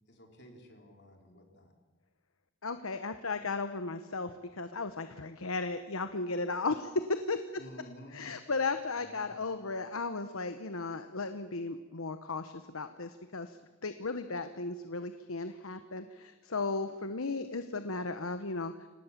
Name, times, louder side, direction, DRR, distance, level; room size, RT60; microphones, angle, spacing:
voice 1, 0.1-1.7 7.6-8.2 9.0-9.3, equal, 55° left, 2 dB, 4.2 m, -52 dB
voice 2, 2.6-7.4 8.1-13.6 13.8-18.7, left 3 dB, 90° left, 9 dB, 1.1 m, -35 dB
26.0 x 18.5 x 7.5 m, 1.2 s
head